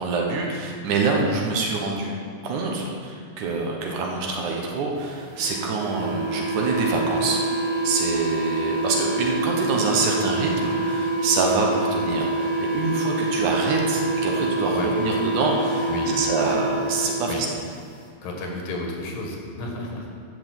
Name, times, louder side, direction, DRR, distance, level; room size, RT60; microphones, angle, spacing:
voice 1, 0.0-2.2 2.4-7.4 7.8-17.5, right 3 dB, 70° right, 0 dB, 2.5 m, -26 dB
sound 1, 5.3-17.4, right 2 dB, 35° right, 1.3 m, -26 dB
voice 2, 15.9-16.2 17.3-17.5 18.2-20.1, left 2 dB, 85° left, 0 dB, 3.3 m, -32 dB
11.0 x 5.7 x 7.6 m, 2.1 s
omnidirectional pair, 3.9 m